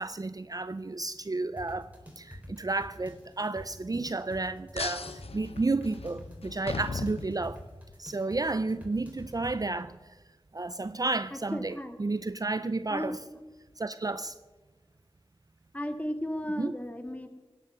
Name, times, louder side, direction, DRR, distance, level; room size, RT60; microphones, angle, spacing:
voice 1, 0.0-1.9 2.2-7.6 8.0-10.0 10.5-13.2 13.8-14.4 16.6-16.8, right 3 dB, 40° right, 0.5 m, -32 dB
sound 1, 1.6-9.6, equal, 15° right, 4.2 m, -47 dB
sound 2, 4.8-8.0, left 4 dB, 80° left, 0.8 m, -38 dB
voice 2, 11.3-12.0 12.9-13.2 15.7-17.3, equal, 15° left, 1.9 m, -35 dB
17.5 x 10.5 x 6.7 m
wide cardioid pair, 45°, 10 cm